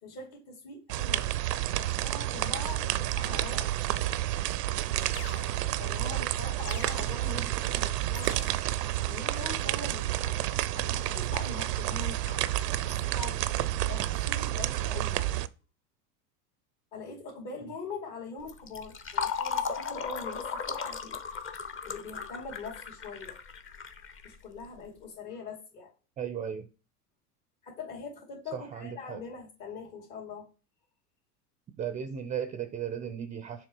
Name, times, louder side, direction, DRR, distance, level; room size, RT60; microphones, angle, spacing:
voice 1, 0.0-1.3 1.8-3.9 5.8-8.5 9.0-10.4 11.1-12.6 12.8-13.4 13.9-15.2 16.9-21.5 21.8-23.3 24.2-25.9 27.6-30.5, left 4 dB, 55° left, 2.5 m, -43 dB
sound 1, 0.9-15.5, right 14 dB, 85° right, 0.6 m, -30 dB
sound 2, 4.5-4.6 5.1-6.0 6.6-7.5 8.1-8.9 10.8-11.5 12.3-12.5, left 9 dB, 70° left, 0.8 m, -48 dB
Fill (with liquid), 18.4-24.8, left 6 dB, 25° left, 0.8 m, -36 dB
voice 2, 26.2-26.7 28.5-29.2 31.8-33.7, right 8 dB, 15° right, 0.4 m, -36 dB
6.8 x 3.2 x 4.6 m
hypercardioid pair, 95°, 47 cm